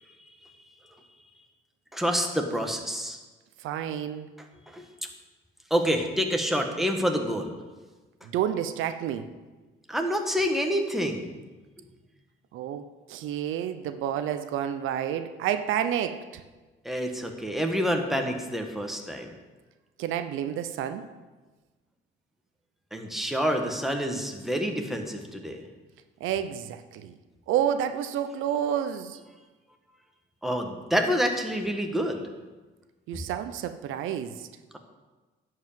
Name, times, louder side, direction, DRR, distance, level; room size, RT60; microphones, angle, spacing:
voice 1, 1.9-3.2 4.7-4.8 5.7-7.5 9.9-11.3 16.8-19.3 22.9-25.6 30.4-32.2 33.1-33.2, equal, ahead, 3 dB, 1.4 m, -27 dB
voice 2, 3.6-4.3 8.2-9.3 12.5-16.4 20.0-21.1 26.2-27.2 27.5-29.2 33.1-34.5, right 10 dB, 90° right, 10 dB, 0.6 m, -30 dB
10.5 x 4.8 x 7.5 m, 1.2 s
cardioid pair, 90°, 20 cm